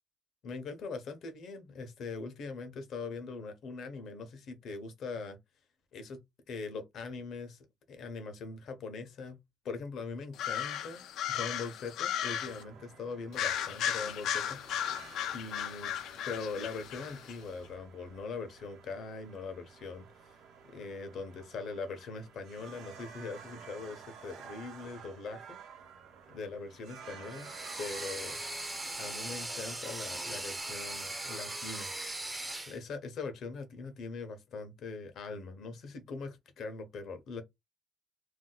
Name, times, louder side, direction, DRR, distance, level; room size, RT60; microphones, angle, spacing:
voice 1, 0.4-5.4 5.9-6.2 6.5-7.6 7.9-9.4 9.6-11.0 11.3-14.6 14.9-15.9 16.3-20.4 20.7-25.6 26.3-27.5 27.8-28.4 29.0-31.9 32.7-37.4, left 4 dB, 60° left, 0.7 m, -41 dB
sound 1, 10.3-12.6 13.3-17.4, left 9 dB, 85° left, 0.4 m, -35 dB
sound 2, 12.4-30.6, right 6 dB, 90° right, 0.8 m, -53 dB
sound 3, 27.3-32.8, right 2 dB, 10° right, 0.5 m, -39 dB
2.6 x 2.1 x 3.8 m
cardioid pair, 160°, 0 cm